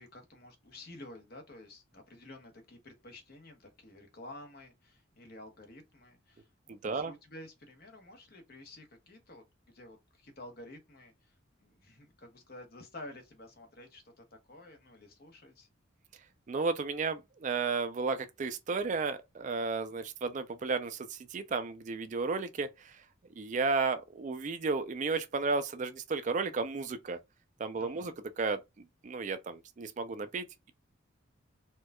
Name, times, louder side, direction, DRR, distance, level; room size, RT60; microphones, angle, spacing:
voice 1, 0.0-15.7 27.8-28.1, left 1 dB, 50° left, 1.0 m, -51 dB
voice 2, 6.7-7.1 16.5-23.0 23.4-27.2 27.6-28.6 29.0-30.7, right 4 dB, 40° right, 0.4 m, -33 dB
4.3 x 2.3 x 2.2 m
head